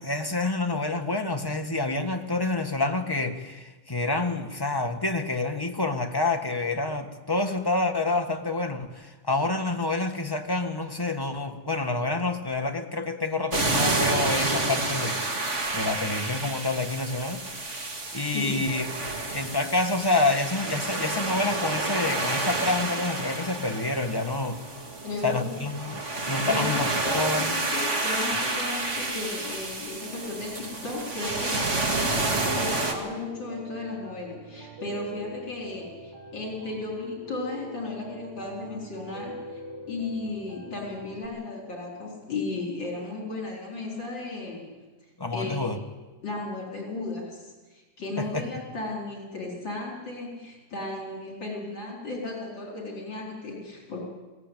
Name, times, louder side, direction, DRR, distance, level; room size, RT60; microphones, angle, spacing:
voice 1, 0.0-17.4 18.1-18.9 19.3-24.6 25.2-26.9 27.1-27.6 45.2-45.8 48.2-48.6, left 2 dB, 10° left, 5 dB, 1.5 m, -28 dB
sound 1, 13.5-32.9, right 2 dB, 35° right, 2.6 m, -29 dB
voice 2, 25.0-25.5 26.4-39.6 39.9-44.8 45.3-45.7 46.2-54.0, left 2 dB, 60° left, -1 dB, 5.0 m, -35 dB
Piano, 32.5-41.3, left 1 dB, 85° right, 5.2 m, -42 dB
22.0 x 17.5 x 9.2 m, 1.2 s
omnidirectional pair, 2.3 m